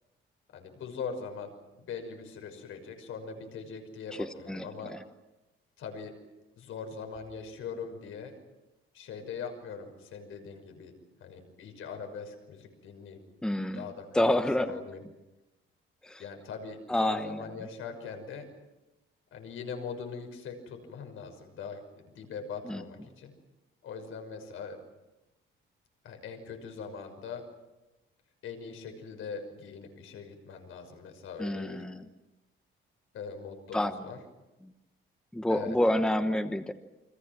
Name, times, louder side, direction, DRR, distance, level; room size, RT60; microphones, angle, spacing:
voice 1, 0.5-4.9 5.8-6.1 6.6-8.3 8.9-10.9 11.2-13.2 13.7-15.0 16.2-18.4 19.3-23.3 23.8-24.8 26.0-27.4 28.4-31.8 33.1-34.2 35.5-35.8, left 5 dB, 75° left, 5 dB, 6.0 m, -41 dB
voice 2, 4.1-5.0 13.4-13.9 14.1-14.7 16.0-16.2 16.9-17.5 22.6-22.8 31.4-32.1 33.7-34.0 34.6-34.7 35.3-36.7, left 1 dB, 5° left, 8 dB, 1.1 m, -29 dB
29.5 x 24.5 x 6.1 m, 1.0 s
cardioid pair, 155°, 21 cm